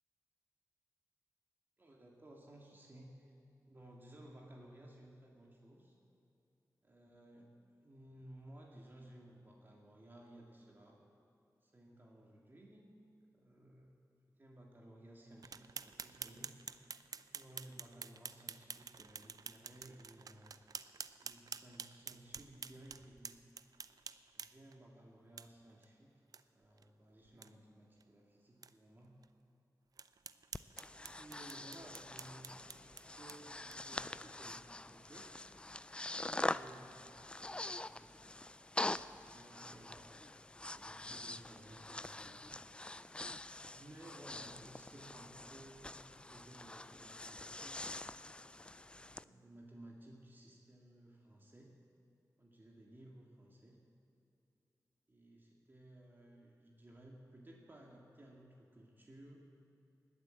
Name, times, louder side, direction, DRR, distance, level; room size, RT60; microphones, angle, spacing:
voice 1, 1.8-3.3 3.7-6.0 6.8-11.0 11.6-12.9 13.3-13.9 14.3-16.6 17.3-20.6 21.2-23.3 24.3-26.2 26.5-29.2 31.1-32.6 32.9-35.5 36.1-40.2 40.6-42.5 43.7-47.9 48.7-51.7 52.4-53.8 55.1-59.4, right 1 dB, 30° right, -1 dB, 2.0 m, -58 dB
sound 1, 15.4-24.7 25.4-25.5 25.8-25.9 26.3-26.4 26.8-26.9 27.3-27.5 28.0-28.1 28.6-28.7 29.2-29.3 30.0-34.0, right 6 dB, 70° right, 0.5 m, -49 dB
Breathing, 30.5-49.2, left 2 dB, 15° left, 0.3 m, -45 dB
20.0 x 8.4 x 7.7 m, 2.7 s
wide cardioid pair, 110°, 7 cm